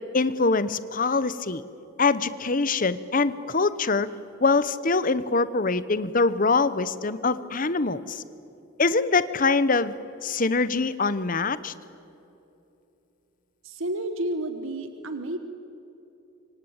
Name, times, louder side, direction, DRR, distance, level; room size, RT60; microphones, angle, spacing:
voice 1, 0.1-1.6 2.0-4.1 4.4-8.2 8.8-9.9 10.2-11.7, left 3 dB, 40° left, 15 dB, 0.9 m, -24 dB
voice 2, 13.6-15.4, right 1 dB, 75° right, 8 dB, 1.4 m, -31 dB
26.0 x 24.5 x 8.9 m, 2.9 s
head